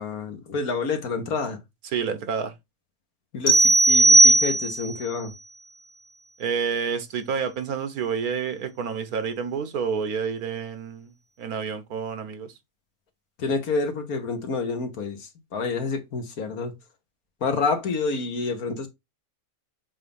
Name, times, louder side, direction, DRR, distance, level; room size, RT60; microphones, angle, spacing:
voice 1, 0.0-1.6 3.3-5.3 13.4-16.7 17.4-18.9, left 4 dB, 75° left, 1.8 m, -28 dB
voice 2, 1.9-2.5 6.4-12.5, right 6 dB, 80° right, 1.5 m, -29 dB
sound 1, 3.5-5.0, right 2 dB, 15° left, 1.0 m, -16 dB
7.4 x 2.7 x 5.3 m
omnidirectional pair, 1.5 m